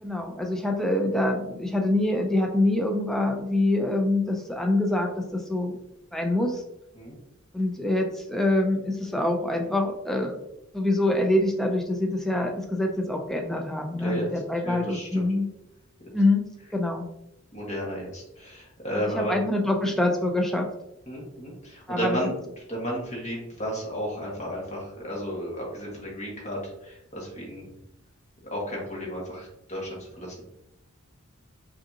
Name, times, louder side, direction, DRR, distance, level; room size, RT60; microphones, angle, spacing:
voice 1, 0.0-5.8 6.1-6.6 7.5-10.4 10.7-15.5 16.1-16.4 16.7-17.1 19.1-20.7 21.9-22.2, left 1 dB, ahead, 1 dB, 0.4 m, -25 dB
voice 2, 14.6-15.2 17.5-19.3 21.1-22.4 22.7-27.7 28.4-30.4, equal, 30° left, -4 dB, 1.4 m, -33 dB
5.2 x 2.6 x 2.7 m, 0.86 s
head